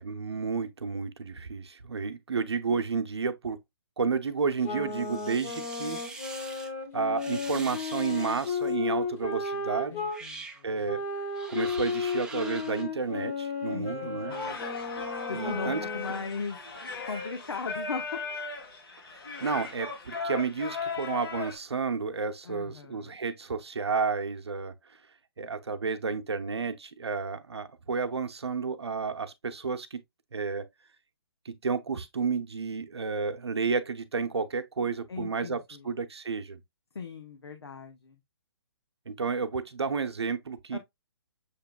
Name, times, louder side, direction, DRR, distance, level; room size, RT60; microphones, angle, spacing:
voice 1, 0.0-3.6 4.0-6.0 6.4-6.5 6.9-10.1 10.6-11.0 11.5-14.4 15.3-15.8 19.1-25.0 25.4-30.0 30.3-30.7 31.4-36.6 39.1-40.8, right 5 dB, 90° right, 0.7 m, -31 dB
sound 1, 4.6-10.2 10.8-16.3, left 4 dB, 35° left, 1.8 m, -34 dB
sound 2, 4.9-6.7 7.2-8.7 9.4-9.6 10.0-10.6 11.3-12.8, right 3 dB, 5° right, 0.6 m, -44 dB
voice 2, 9.9-11.0 13.7-14.6 15.3-16.6 17.1-18.0 22.4-23.2 35.1-35.9 36.9-38.2 40.7-40.8, left 4 dB, 85° left, 0.9 m, -38 dB
Singing, 14.3-21.5, left 5 dB, 65° left, 1.9 m, -37 dB
6.6 x 3.0 x 2.2 m
hypercardioid pair, 145°, 13 cm